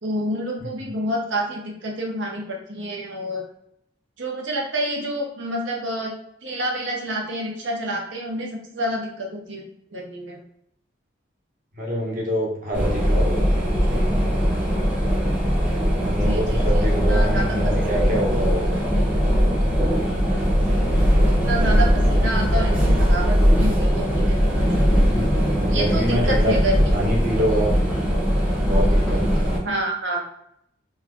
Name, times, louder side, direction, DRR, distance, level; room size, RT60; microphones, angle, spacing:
voice 1, 0.0-3.4 4.2-6.1 6.4-9.6 9.9-10.4 16.2-17.7 20.8-25.0 25.7-26.8 29.6-30.2, right 1 dB, 75° right, -1 dB, 0.9 m, -28 dB
voice 2, 11.8-14.3 16.0-18.9 24.9-26.5 26.9-27.7 28.7-29.2, equal, 45° right, -3 dB, 1.1 m, -26 dB
sound 1, 12.7-29.6, equal, 5° right, 0.8 m, -20 dB
3.2 x 2.3 x 3.6 m, 0.74 s
head